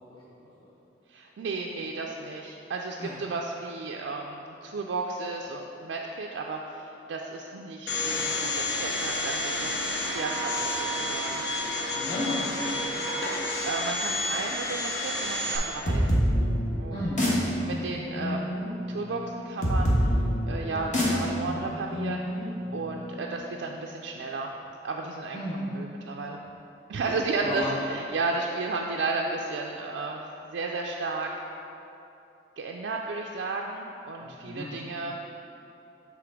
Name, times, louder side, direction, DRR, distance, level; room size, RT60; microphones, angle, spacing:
voice 1, 1.1-11.4 13.4-16.2 16.8-17.0 17.6-20.2 20.5-22.2 22.7-24.5 24.8-25.4 25.7-26.4 26.9-31.3 32.6-35.1, right 3 dB, 75° right, 0 dB, 0.3 m, -33 dB
Domestic sounds home sounds, 7.9-15.6, left 1 dB, 70° left, 0.8 m, -30 dB
voice 2, 11.9-13.0 16.9-17.3 25.3-25.7 27.4-27.7 34.2-34.7, left 1 dB, 20° left, -11 dB, 0.9 m, -33 dB
sound 1, 15.8-23.2, equal, 40° left, 1.1 m, -27 dB
6.8 x 3.4 x 4.7 m, 2.9 s
head